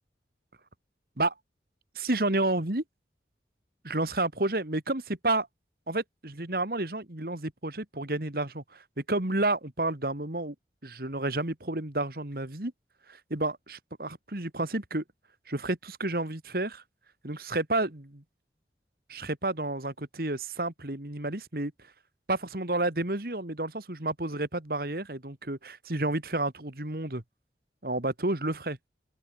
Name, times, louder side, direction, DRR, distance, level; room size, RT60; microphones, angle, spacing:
voice 1, 2.0-2.8 3.8-5.5 5.9-10.6 10.8-12.7 13.1-15.0 15.5-16.8 17.2-18.2 19.1-21.9 22.3-27.2 27.8-28.8, right 2 dB, 55° right, 2.2 m, -30 dB
head